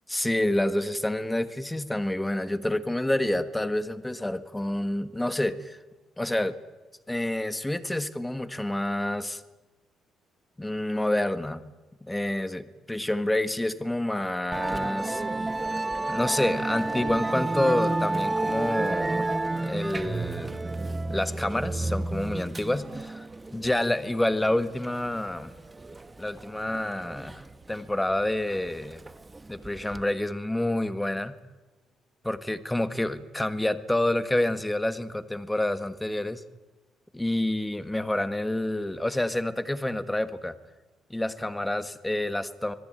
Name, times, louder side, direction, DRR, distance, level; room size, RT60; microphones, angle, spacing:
voice 1, 0.1-5.8 6.2-6.5 7.1-9.4 10.6-11.6 12.0-15.2 16.1-19.3 19.6-20.6 21.1-25.5 26.2-29.0 29.5-31.4 32.2-36.4 37.1-40.5 41.1-42.7, left 1 dB, 10° left, 11 dB, 1.5 m, -28 dB
Musical instrument, 14.5-30.0, right 2 dB, 20° right, 1.1 m, -31 dB
26.0 x 18.5 x 9.1 m, 1.1 s
cardioid pair, 105°, 0 cm